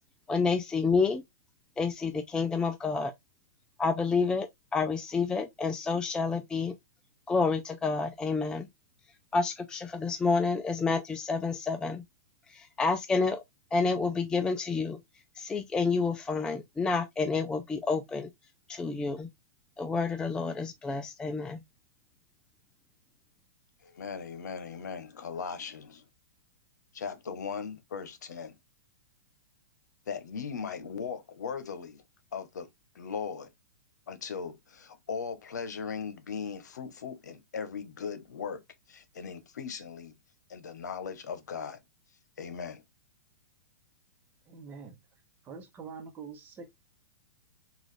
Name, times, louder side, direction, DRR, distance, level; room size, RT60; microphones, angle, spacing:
voice 1, 0.3-1.2 1.8-3.1 3.8-6.7 7.3-8.7 9.3-12.0 12.5-13.4 13.7-15.0 15.3-18.3 18.7-19.3 19.8-21.6, left 4 dB, 10° left, 0.3 m, -29 dB
voice 2, 23.8-26.0 26.9-28.6 30.1-32.0 32.3-32.7 32.9-33.5 34.1-38.6 38.9-40.1 40.5-41.8 42.4-42.8, left 6 dB, 85° left, 0.9 m, -38 dB
voice 3, 44.5-45.0 45.4-46.7, right 5 dB, 20° right, 0.9 m, -44 dB
3.8 x 2.4 x 3.2 m
hypercardioid pair, 140°, 9 cm